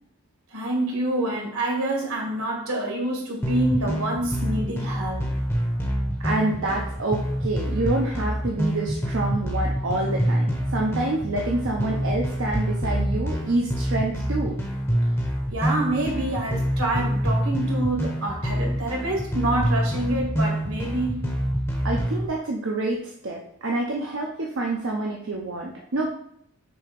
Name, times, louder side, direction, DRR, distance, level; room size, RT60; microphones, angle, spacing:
voice 1, 0.5-5.3 15.5-21.3, right 1 dB, 75° right, -1 dB, 1.8 m, -27 dB
sound 1, 3.4-22.3, equal, 10° left, 0.8 m, -26 dB
voice 2, 6.2-14.6 21.8-26.1, right 2 dB, 55° right, -1 dB, 0.7 m, -27 dB
6.9 x 2.8 x 5.2 m, 0.70 s
head